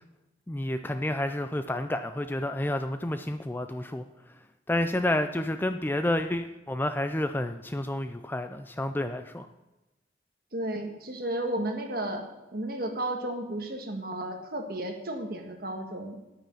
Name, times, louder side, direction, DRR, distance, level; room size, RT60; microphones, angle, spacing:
voice 1, 0.5-4.0 4.7-9.5, left 1 dB, 10° left, 9 dB, 0.4 m, -30 dB
voice 2, 10.5-12.3 12.5-16.2, right 1 dB, 50° right, 4 dB, 1.6 m, -33 dB
10.0 x 8.9 x 5.4 m, 1.0 s
head